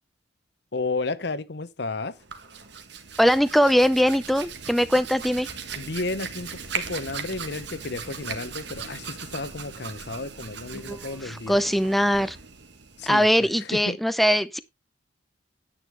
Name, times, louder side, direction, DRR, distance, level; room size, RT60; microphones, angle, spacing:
voice 1, 0.7-2.2 5.8-11.6 13.0-14.0, left 3 dB, 60° left, 0.9 m, -32 dB
Hands, 2.1-13.5, right 5 dB, 60° right, 1.5 m, -38 dB
voice 2, 3.2-5.5 10.9-12.4 13.1-14.6, equal, ahead, 0.5 m, -21 dB
9.9 x 9.0 x 3.3 m
head